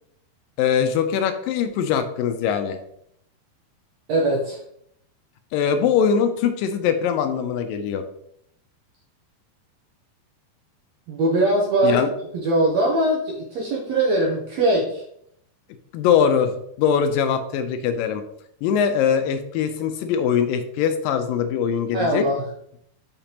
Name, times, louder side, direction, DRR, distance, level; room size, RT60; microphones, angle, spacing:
voice 1, 0.6-2.8 5.5-8.0 11.8-12.1 15.9-18.2 18.6-22.2, left 7 dB, 80° left, 8 dB, 2.2 m, -22 dB
voice 2, 4.1-4.6 11.1-12.0 12.3-15.0 21.9-22.4, right 1 dB, 70° right, -2 dB, 1.6 m, -21 dB
6.9 x 5.8 x 2.9 m, 0.70 s
omnidirectional pair, 4.1 m